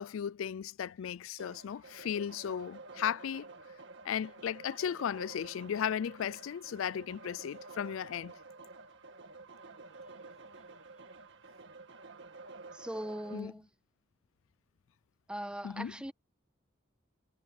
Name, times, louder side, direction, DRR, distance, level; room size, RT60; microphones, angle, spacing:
voice 1, 0.0-3.5 4.0-8.3 13.3-13.5 15.6-15.9, left 8 dB, 80° left, 0.4 m, -36 dB
sound 1, 1.4-13.4, right 3 dB, 60° right, 1.9 m, -51 dB
voice 2, 12.7-13.7 15.3-16.1, right 1 dB, 5° right, 1.3 m, -40 dB
head